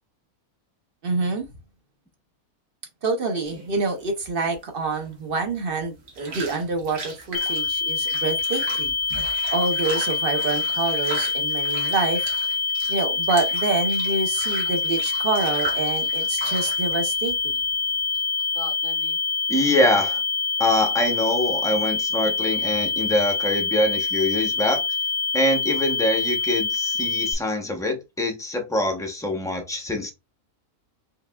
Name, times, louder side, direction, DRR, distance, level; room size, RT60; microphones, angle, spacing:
voice 1, 1.0-1.5 3.0-12.3 12.9-17.4, right 3 dB, 50° right, 0.7 m, -27 dB
sound 1, 3.4-18.2, right 3 dB, 90° right, 1.7 m, -38 dB
sound 2, 7.3-27.3, left 4 dB, 60° left, 0.6 m, -25 dB
voice 2, 18.6-19.2 19.5-20.2 20.6-24.8 25.3-30.1, left 1 dB, 5° left, 0.4 m, -24 dB
4.8 x 3.4 x 2.2 m
omnidirectional pair, 1.6 m